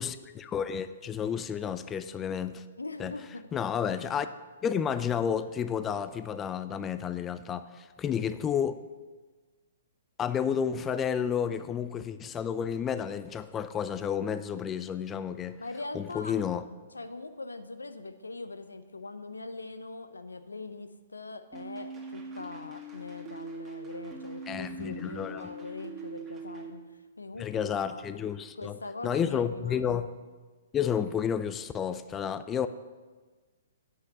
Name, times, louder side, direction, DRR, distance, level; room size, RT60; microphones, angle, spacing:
voice 1, 0.0-2.6 3.0-3.1 3.5-4.3 4.6-8.8 10.2-15.6 15.9-16.6 24.5-25.5 27.4-28.8 29.0-30.1 30.7-32.7, left 8 dB, 20° left, 0.5 m, -31 dB
voice 2, 2.8-3.5 15.6-16.4 16.9-28.0 28.6-30.1, left 3 dB, 85° left, 0.8 m, -42 dB
sound 1, 21.5-26.7, right 2 dB, 20° right, 1.8 m, -42 dB
8.4 x 5.9 x 8.0 m
figure-of-eight pair, 125°, 0 cm